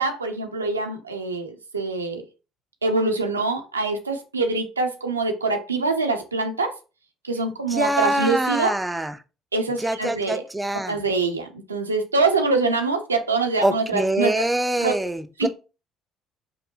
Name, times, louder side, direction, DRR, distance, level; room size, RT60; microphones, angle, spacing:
voice 1, 0.0-2.2 2.8-6.8 7.2-8.7 9.5-10.4 10.9-14.5 14.8-14.9 15.4-15.5, right 3 dB, 90° right, 0.5 m, -24 dB
voice 2, 7.7-9.1 9.8-10.9 13.6-15.5, right 1 dB, 10° right, 0.5 m, -24 dB
5.2 x 2.1 x 2.8 m
figure-of-eight pair, 50°, 0 cm